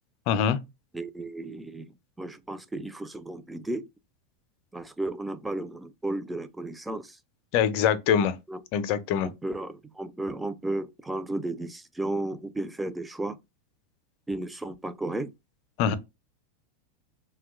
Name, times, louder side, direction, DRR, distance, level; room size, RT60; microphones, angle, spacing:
voice 1, 0.3-0.6 7.5-8.4 8.7-9.3 15.8-15.9, left 8 dB, 55° left, 0.5 m, -23 dB
voice 2, 0.9-1.9 2.2-3.9 4.7-7.2 8.5-8.6 9.2-13.4 14.3-15.3, right 2 dB, 10° right, 0.4 m, -34 dB
2.8 x 2.2 x 3.5 m
hypercardioid pair, 105°, 0 cm